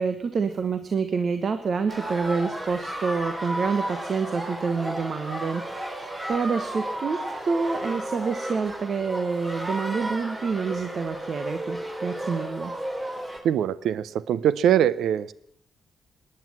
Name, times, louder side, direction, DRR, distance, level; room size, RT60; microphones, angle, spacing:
voice 1, 0.0-12.7, right 5 dB, 55° right, 9 dB, 1.1 m, -28 dB
sound 1, 1.9-13.4, right 1 dB, 25° right, 3.7 m, -33 dB
voice 2, 13.4-15.3, right 10 dB, 75° right, 19 dB, 0.6 m, -22 dB
19.0 x 10.0 x 7.4 m, 0.69 s
hypercardioid pair, 45°, 0 cm